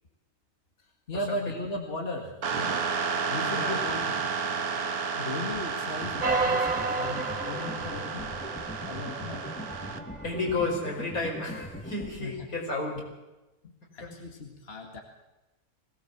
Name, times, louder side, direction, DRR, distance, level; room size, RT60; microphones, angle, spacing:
voice 1, 0.8-2.8 3.3-4.2 5.2-8.3 8.9-9.5 12.2-12.7 13.6-15.0, left 2 dB, 40° left, 1 dB, 2.3 m, -37 dB
sound 1, 2.4-10.0, right 5 dB, 90° right, 1.9 m, -32 dB
sound 2, 6.0-12.1, equal, 5° left, 2.3 m, -41 dB
sound 3, 6.2-10.7 11.3-11.4, right 3 dB, 30° right, 1.3 m, -32 dB
voice 2, 10.2-13.0 14.0-14.1, left 2 dB, 75° left, 0 dB, 5.6 m, -32 dB
21.5 x 18.0 x 7.3 m, 1.0 s
omnidirectional pair, 1.6 m